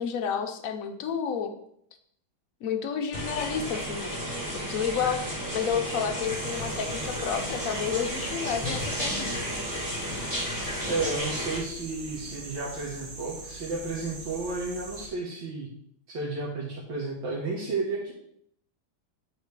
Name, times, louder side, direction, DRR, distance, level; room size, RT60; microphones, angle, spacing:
voice 1, 0.0-1.5 2.6-4.2 4.7-5.2 5.5-9.5, left 7 dB, 60° left, 6 dB, 0.9 m, -30 dB
sound 1, 3.1-11.6, equal, 10° right, 1.8 m, -33 dB
sound 2, 6.2-15.1, right 3 dB, 45° right, 0.9 m, -42 dB
voice 2, 10.8-15.7 16.1-18.1, right 3 dB, 75° right, -5 dB, 2.0 m, -32 dB
8.8 x 4.9 x 3.2 m, 0.69 s
omnidirectional pair, 2.1 m